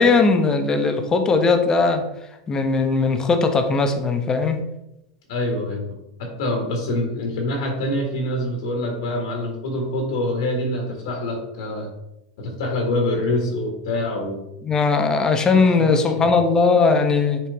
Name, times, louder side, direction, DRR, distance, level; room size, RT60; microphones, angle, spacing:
voice 1, 0.0-2.0 2.5-4.6 14.6-17.4, left 4 dB, 20° left, 6 dB, 1.0 m, -18 dB
voice 2, 5.3-5.9 6.2-11.9 12.4-14.4 15.5-16.2, left 1 dB, 70° left, 1 dB, 1.7 m, -25 dB
7.2 x 4.5 x 3.5 m, 0.88 s
hypercardioid pair, 115°, 3 cm